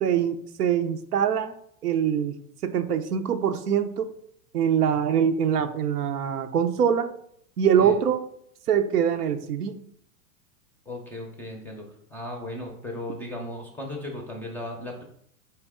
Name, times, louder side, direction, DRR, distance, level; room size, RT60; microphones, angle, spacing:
voice 1, 0.0-1.5 1.8-2.3 2.6-4.1 4.5-7.1 7.6-8.2 8.7-9.8, right 8 dB, 85° right, 8 dB, 0.6 m, -23 dB
voice 2, 10.9-11.8 12.1-15.0, left 1 dB, 5° left, 1 dB, 0.4 m, -36 dB
4.4 x 3.2 x 3.5 m, 0.68 s
hypercardioid pair, 110°, 46 cm